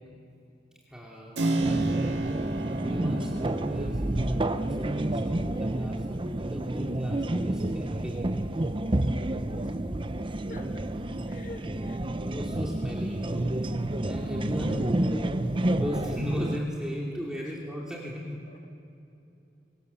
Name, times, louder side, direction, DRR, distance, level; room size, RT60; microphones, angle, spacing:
voice 1, 0.9-2.3 2.8-8.3 11.6-13.5 14.0-15.4 15.8-18.5, equal, 5° right, -4 dB, 2.5 m, -37 dB
Keyboard (musical), 1.4-9.9, right 2 dB, 75° right, 1.9 m, -35 dB
sound 1, 1.6-16.6, right 1 dB, 30° right, 0.7 m, -29 dB
voice 2, 10.5-10.8 11.3-12.0 17.4-17.5 18.5-18.7, left 2 dB, 45° left, 4 dB, 1.5 m, -46 dB
24.5 x 22.5 x 7.0 m, 2.7 s
head